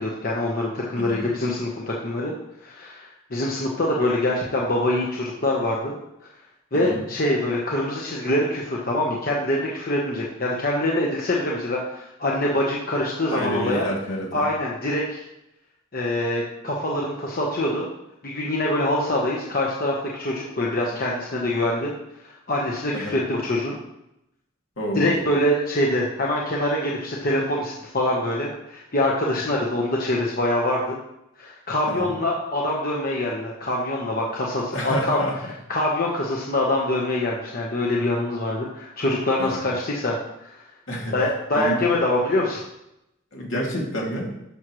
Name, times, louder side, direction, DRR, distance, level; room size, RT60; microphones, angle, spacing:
voice 1, 0.0-2.3 2.6-5.9 6.7-13.9 14.3-15.2 15.9-17.9 18.2-21.9 22.2-23.8 24.9-30.9 31.4-35.2 35.7-40.6 41.1-42.6, left 1 dB, 45° left, -3 dB, 1.1 m, -24 dB
voice 2, 13.3-14.4 22.9-23.2 24.8-25.2 31.9-32.1 34.7-35.3 39.4-39.6 40.9-41.1 41.5-41.8 43.3-44.3, equal, 70° left, -2 dB, 2.4 m, -28 dB
12.5 x 6.2 x 3.2 m, 0.85 s
head